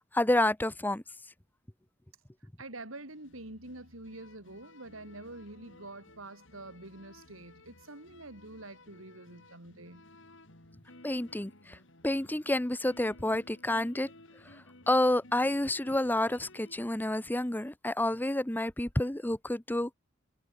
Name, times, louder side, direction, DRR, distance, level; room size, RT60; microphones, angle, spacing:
voice 1, 0.1-1.0 11.0-11.8 12.0-14.1 14.9-19.9, left 1 dB, 10° left, 0.8 m, -29 dB
voice 2, 2.6-10.1, right 2 dB, 85° right, 6.9 m, -46 dB
sound 1, 3.1-16.8, left 2 dB, 65° left, 5.1 m, -56 dB
head